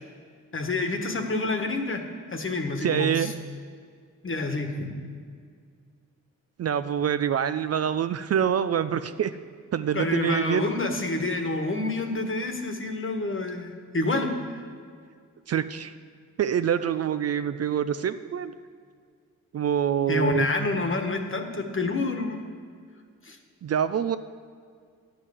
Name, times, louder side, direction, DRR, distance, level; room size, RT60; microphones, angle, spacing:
voice 1, 0.5-2.0 2.3-3.3 4.2-5.0 9.9-14.6 20.1-22.4 23.2-23.4, left 2 dB, 40° left, 5 dB, 1.4 m, -28 dB
voice 2, 2.8-3.3 6.6-9.3 9.7-10.7 15.5-15.9 16.4-18.5 19.5-20.5 23.6-24.2, right 9 dB, 50° right, 11 dB, 0.4 m, -25 dB
9.5 x 5.5 x 8.1 m, 2.1 s
cardioid pair, 55°, 33 cm